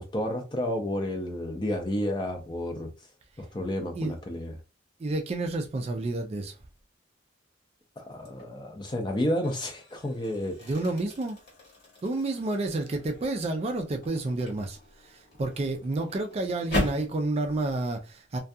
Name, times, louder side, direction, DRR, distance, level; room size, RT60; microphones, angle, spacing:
voice 1, 0.0-2.9 3.5-4.5 8.0-10.7, left 1 dB, 25° left, 0.5 m, -31 dB
voice 2, 5.0-6.6 10.6-11.4 12.0-18.4, right 2 dB, 30° right, 0.3 m, -30 dB
sound 1, 8.2-8.6 9.1-17.2, left 1 dB, 50° left, 1.1 m, -38 dB
2.3 x 2.2 x 2.6 m
head